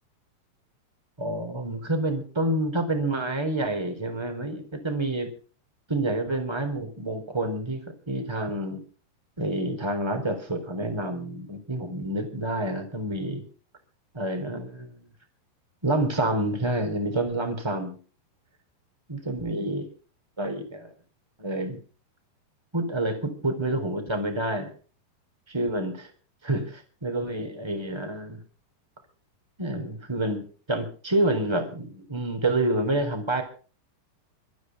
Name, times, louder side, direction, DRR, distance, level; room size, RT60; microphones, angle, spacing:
voice 1, 1.2-5.3 5.9-7.8 8.1-8.8 9.4-13.4 14.1-15.0 15.8-18.0 19.1-19.9 20.4-20.9 21.4-21.8 22.7-24.7 25.5-26.1 26.4-28.4 29.6-33.4, right 1 dB, 5° right, 6 dB, 3.7 m, -28 dB
25.0 x 10.0 x 4.8 m, 0.40 s
omnidirectional pair, 4.8 m